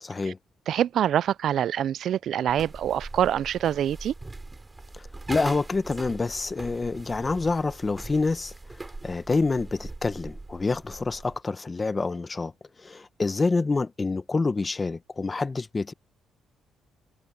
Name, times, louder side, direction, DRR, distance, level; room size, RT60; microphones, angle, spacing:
voice 1, 0.0-0.4 4.9-8.5 9.0-12.5 12.8-15.9, left 3 dB, 25° left, 1.2 m, -27 dB
voice 2, 0.7-4.1, right 10 dB, 70° right, 0.3 m, -25 dB
sound 1, 2.5-11.4, right 2 dB, 20° right, 5.4 m, -41 dB
cardioid pair, 90°, 0 cm